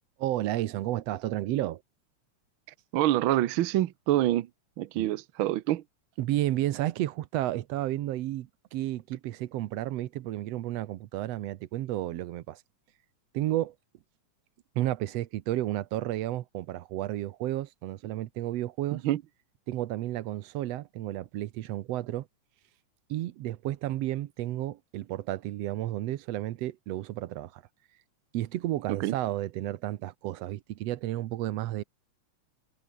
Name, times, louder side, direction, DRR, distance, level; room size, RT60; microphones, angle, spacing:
voice 1, 0.2-1.8 5.0-5.1 6.2-12.6 13.3-13.8 14.8-19.0 19.7-22.3 23.1-27.6 28.3-31.8, right 14 dB, 70° right, 1.8 m, -32 dB
voice 2, 2.9-4.5 4.8-5.8 18.9-19.2 28.9-29.1, right 14 dB, 85° right, 1.1 m, -26 dB
omnidirectional pair, 3.3 m